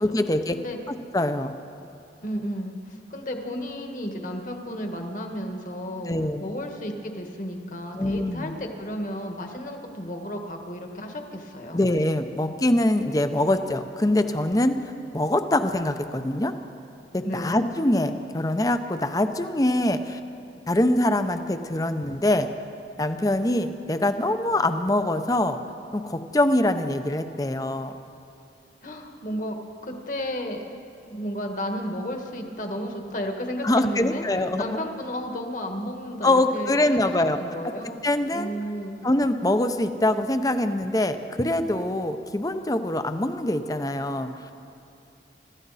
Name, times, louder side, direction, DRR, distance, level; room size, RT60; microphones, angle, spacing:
voice 1, 0.0-0.6 0.9-1.5 6.1-6.5 8.0-8.5 11.7-14.8 15.1-16.5 17.1-20.2 20.7-22.5 23.0-25.6 25.9-27.9 33.6-34.8 36.2-37.4 37.6-37.7 38.0-38.5 39.0-44.3, left 1 dB, 20° left, 9 dB, 0.6 m, -24 dB
voice 2, 2.2-6.1 6.4-11.8 17.2-17.5 28.8-30.6 31.1-34.2 34.6-38.0 38.3-39.0, equal, 45° left, 3 dB, 1.6 m, -33 dB
25.5 x 13.5 x 4.1 m, 2.7 s
head